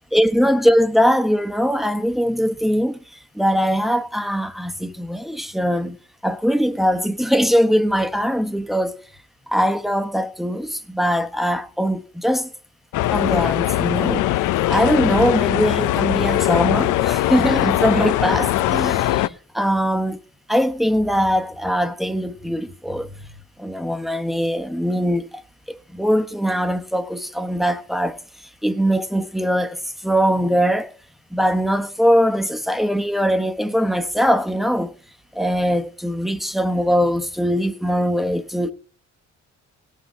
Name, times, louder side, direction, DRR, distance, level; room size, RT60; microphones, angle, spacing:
voice 1, 0.1-3.0 3.3-6.0 6.2-9.0 9.5-12.5 13.1-14.3 14.7-20.2 20.5-25.4 25.7-28.2 28.6-30.9 31.3-34.9 35.3-38.7, equal, ahead, 1.1 m, -21 dB
sound 1, 12.9-19.3, left 15 dB, 85° left, 0.6 m, -20 dB
18.0 x 6.5 x 4.4 m
cardioid pair, 90°, 30 cm